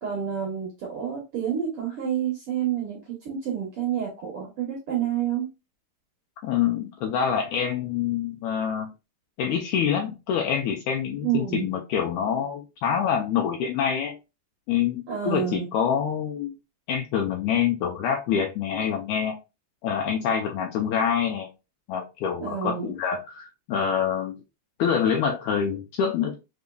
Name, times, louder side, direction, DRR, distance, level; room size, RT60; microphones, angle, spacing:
voice 1, 0.0-3.0 3.2-5.5 11.2-11.7 15.1-15.7 22.4-22.9, right 9 dB, 65° right, -2 dB, 1.5 m, -28 dB
voice 2, 6.4-8.9 9.4-14.2 14.7-16.5 16.9-19.4 19.8-21.5 21.9-24.4 24.8-26.4, left 8 dB, 80° left, 2 dB, 1.8 m, -26 dB
5.3 x 3.5 x 2.2 m, 0.26 s
omnidirectional pair, 3.8 m